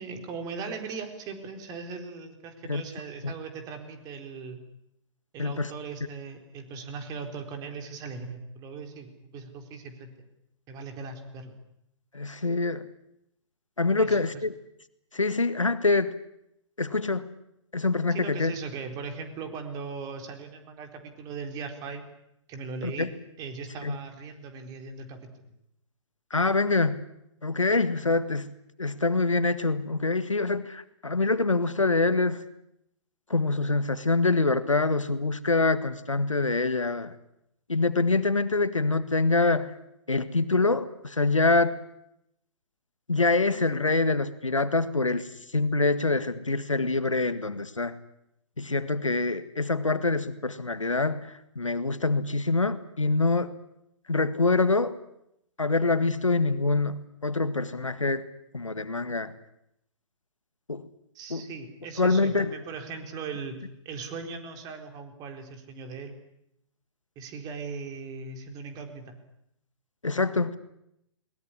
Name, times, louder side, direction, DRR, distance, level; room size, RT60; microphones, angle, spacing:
voice 1, 0.0-4.6 5.3-10.1 10.7-11.6 14.0-14.4 18.1-22.0 22.5-25.3 61.1-63.6 63.8-66.2 67.2-69.1, right 5 dB, 25° right, 6 dB, 4.2 m, -39 dB
voice 2, 5.4-5.7 12.1-12.9 13.8-14.5 15.1-16.1 16.8-17.3 17.7-18.5 22.8-23.1 23.8-24.0 26.3-27.0 27.4-28.5 28.8-32.4 33.3-37.1 37.7-39.7 40.1-41.8 43.1-45.3 45.5-47.9 48.6-53.5 54.1-55.0 55.6-58.2 58.5-59.3 60.7-60.9 61.3-61.4 62.0-62.5 70.0-70.6, left 3 dB, 85° left, 13 dB, 1.8 m, -25 dB
22.0 x 20.5 x 9.9 m, 0.79 s
figure-of-eight pair, 125°, 16 cm